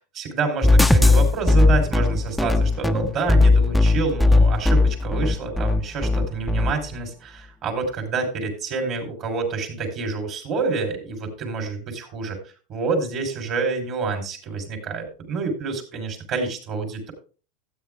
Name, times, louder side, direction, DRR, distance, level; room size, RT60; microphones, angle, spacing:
voice 1, 0.1-12.4 12.7-17.1, right 4 dB, 45° right, 3 dB, 3.6 m, -28 dB
sound 1, 0.6-6.7, left 2 dB, ahead, 0.6 m, -17 dB
13.0 x 8.4 x 3.5 m, 0.36 s
supercardioid pair, 120°, 0 cm